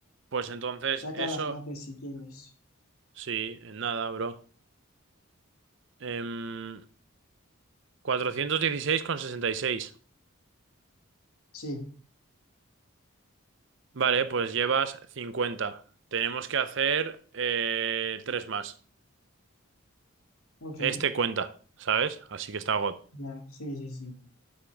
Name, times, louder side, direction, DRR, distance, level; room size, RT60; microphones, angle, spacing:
voice 1, 0.3-1.5 3.2-4.3 6.0-6.8 8.0-9.9 14.0-15.8 16.1-18.7 20.8-21.5 21.8-22.9, right 6 dB, 55° right, 0.6 m, -29 dB
voice 2, 1.0-2.5 11.5-11.8 20.6-21.0 23.1-24.2, left 1 dB, 75° left, 2.0 m, -37 dB
8.7 x 7.4 x 3.4 m
head